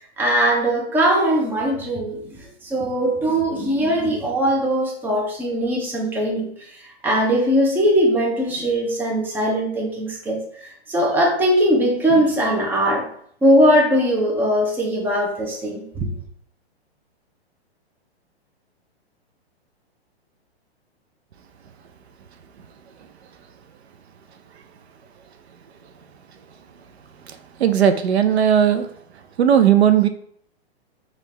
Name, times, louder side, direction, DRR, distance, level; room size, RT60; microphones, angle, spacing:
voice 1, 0.2-6.5 7.0-13.1 13.4-16.1, equal, 5° right, -1 dB, 0.6 m, -20 dB
voice 2, 27.3-28.9 29.4-30.1, right 9 dB, 75° right, 9 dB, 0.6 m, -17 dB
5.2 x 2.5 x 3.2 m, 0.64 s
hypercardioid pair, 130°, 32 cm